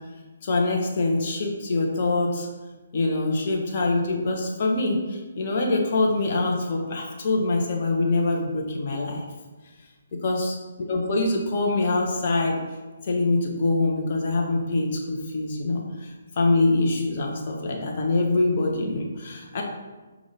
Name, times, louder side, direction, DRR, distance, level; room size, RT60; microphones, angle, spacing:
voice 1, 0.4-2.5 2.9-9.2 10.2-12.6 13.1-16.1 16.4-19.6, left 2 dB, 40° left, -1 dB, 0.8 m, -24 dB
5.4 x 2.4 x 3.3 m, 1.2 s
figure-of-eight pair, 135°, 0 cm